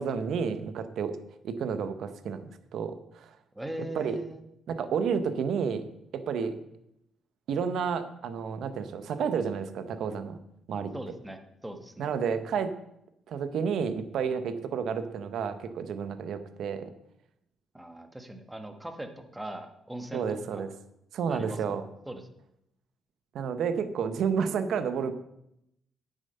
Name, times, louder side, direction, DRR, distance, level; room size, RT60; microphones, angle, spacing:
voice 1, 0.0-3.3 3.9-4.2 4.7-6.6 7.5-10.4 10.7-11.0 12.0-12.8 13.3-16.9 20.1-20.7 21.1-21.8 23.3-25.1, right 6 dB, 70° right, 11 dB, 0.9 m, -31 dB
voice 2, 3.5-4.4 10.9-12.1 17.7-20.3 20.5-20.6 21.3-21.8 22.1-22.2, right 1 dB, 10° right, 7 dB, 1.3 m, -40 dB
9.0 x 7.3 x 5.5 m, 0.80 s
cardioid pair, 90°, 0 cm